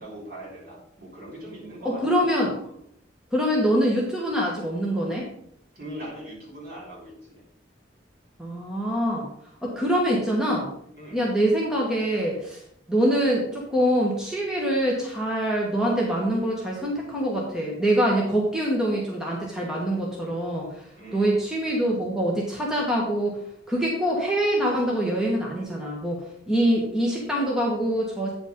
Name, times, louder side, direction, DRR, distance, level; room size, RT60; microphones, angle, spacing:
voice 1, 0.0-2.3 5.7-7.4 11.0-11.2 20.9-21.3, right 1 dB, 50° right, -5 dB, 4.1 m, -40 dB
voice 2, 1.8-2.5 3.3-5.3 8.4-9.3 9.6-10.7 11.1-12.6 12.9-20.8 21.1-23.4 23.7-28.3, equal, 5° right, -4 dB, 1.4 m, -24 dB
9.0 x 5.1 x 5.3 m, 0.70 s
head